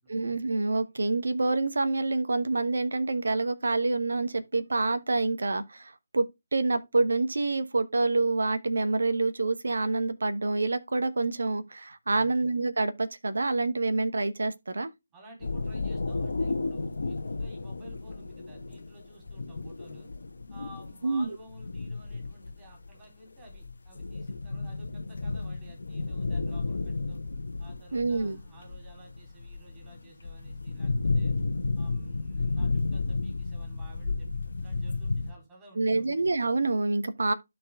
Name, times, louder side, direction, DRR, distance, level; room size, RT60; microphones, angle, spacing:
voice 1, 0.1-14.9 21.0-21.3 27.9-28.4 35.8-37.3, right 3 dB, 65° right, 1.1 m, -27 dB
voice 2, 15.1-20.1 20.5-27.2 27.6-31.4 31.8-34.3 34.5-36.2, right 2 dB, 15° right, 3.8 m, -53 dB
sound 1, 15.4-23.0 23.3-35.3, left 3 dB, 60° left, 1.2 m, -32 dB
12.0 x 4.4 x 3.6 m
figure-of-eight pair, 150°, 0 cm